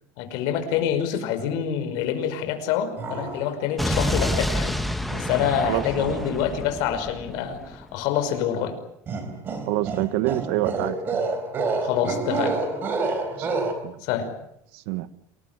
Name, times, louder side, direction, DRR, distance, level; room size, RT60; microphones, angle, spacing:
voice 1, 0.2-4.8 5.1-8.8 11.8-12.6 13.4-13.6 14.0-14.3, left 8 dB, 60° left, 7 dB, 5.4 m, -26 dB
sound 1, 3.0-3.6 3.9-4.7 5.1-6.3 9.1-13.7, right 3 dB, 25° right, 4.2 m, -29 dB
Explosion, 3.8-7.8, left 1 dB, ahead, 1.3 m, -28 dB
voice 2, 5.6-6.2 9.7-11.0 13.4-13.5 13.8-14.0 14.7-15.1, right 16 dB, 70° right, 14 dB, 1.5 m, -26 dB
28.0 x 20.0 x 9.1 m, 0.77 s
cardioid pair, 175°, 8 cm